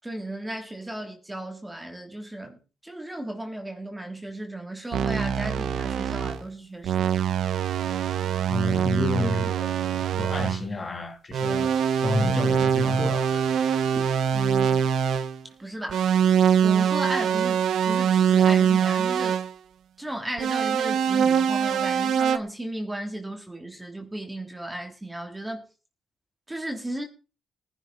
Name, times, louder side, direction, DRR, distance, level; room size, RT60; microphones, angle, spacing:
voice 1, 0.0-7.2 15.6-16.0 16.6-19.4 20.0-25.7 26.5-27.0, right 1 dB, 10° right, 2.8 m, -35 dB
sound 1, 4.9-6.4 6.8-10.6 11.3-15.4 15.9-19.5 20.4-22.4, right 8 dB, 70° right, 0.9 m, -23 dB
voice 2, 8.5-11.7 12.0-13.4, left 2 dB, 35° left, 2.7 m, -30 dB
18.5 x 11.5 x 3.9 m
cardioid pair, 90°, 0 cm